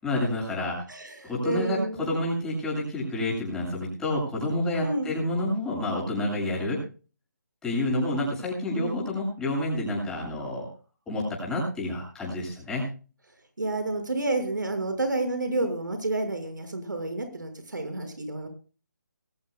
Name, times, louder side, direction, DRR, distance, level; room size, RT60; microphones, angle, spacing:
voice 1, 0.0-0.8 1.2-6.8 7.6-10.7 11.1-12.9, left 1 dB, 5° left, -3 dB, 7.8 m, -29 dB
voice 2, 0.9-2.0 4.8-5.1 8.7-9.0 13.6-18.5, right 2 dB, 90° right, 6 dB, 6.4 m, -30 dB
22.5 x 14.5 x 2.4 m, 0.37 s
figure-of-eight pair, 160°, 10 cm